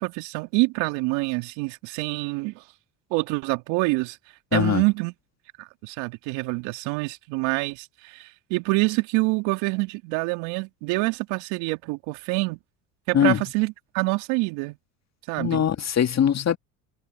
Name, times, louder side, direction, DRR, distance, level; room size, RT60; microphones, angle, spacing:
voice 1, 0.0-2.6 3.1-4.2 4.5-5.1 5.6-12.6 13.1-14.8 15.3-15.6, right 26 dB, 65° right, 2.3 m, -26 dB
voice 2, 4.5-4.8 13.1-13.4 15.4-16.6, left 8 dB, 35° left, 1.9 m, -21 dB
hypercardioid pair, 70°, 46 cm